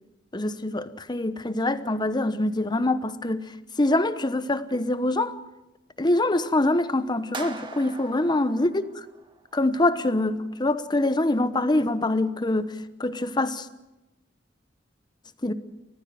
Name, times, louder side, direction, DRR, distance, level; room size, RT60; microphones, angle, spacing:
voice 1, 0.3-3.4 3.8-5.3 6.0-9.0 9.5-12.7 13.0-13.7 15.4-15.5, left 2 dB, 25° left, 1.0 m, -24 dB
sound 1, 7.3-9.6, right 3 dB, 25° right, 1.7 m, -41 dB
29.5 x 15.0 x 7.6 m
head